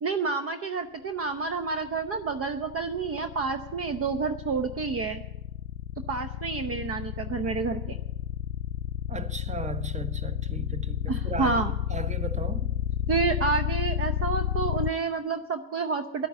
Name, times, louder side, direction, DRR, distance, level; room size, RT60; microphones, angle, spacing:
voice 1, 0.0-5.2 6.1-8.0 11.1-11.7 13.1-16.3, right 4 dB, 40° right, 0.9 m, -29 dB
sound 1, 1.6-14.9, left 12 dB, 70° left, 0.5 m, -31 dB
voice 2, 9.1-12.7, right 4 dB, 20° right, 1.2 m, -37 dB
11.0 x 8.8 x 9.4 m
hypercardioid pair, 65°, 36 cm